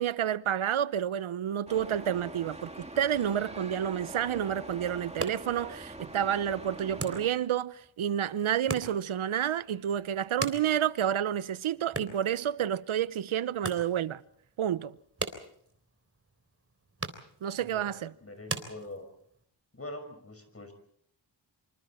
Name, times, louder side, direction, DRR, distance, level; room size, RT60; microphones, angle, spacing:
voice 1, 0.0-14.2 14.6-15.0 17.4-18.1, right 10 dB, 75° right, 0.9 m, -30 dB
sound 1, 1.7-7.3, right 1 dB, 15° right, 2.4 m, -44 dB
sound 2, 4.9-19.4, right 3 dB, 30° right, 3.7 m, -42 dB
voice 2, 17.6-19.0 19.7-20.7, left 1 dB, 30° left, 6.0 m, -44 dB
27.0 x 26.0 x 4.4 m
cardioid pair, 65°, 49 cm